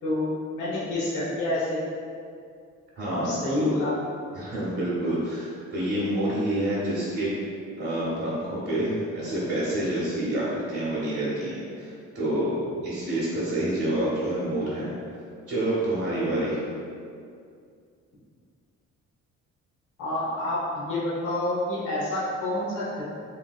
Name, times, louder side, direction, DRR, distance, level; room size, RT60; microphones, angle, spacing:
voice 1, 0.0-1.8 3.1-3.9 20.0-23.0, left 1 dB, 85° left, -8 dB, 0.9 m, -28 dB
voice 2, 3.0-3.8 4.4-7.3 7.8-12.5 12.8-14.9 15.5-16.6, right 1 dB, 50° right, -8 dB, 0.9 m, -28 dB
3.2 x 2.7 x 2.3 m, 2.3 s
cardioid pair, 90°, 30 cm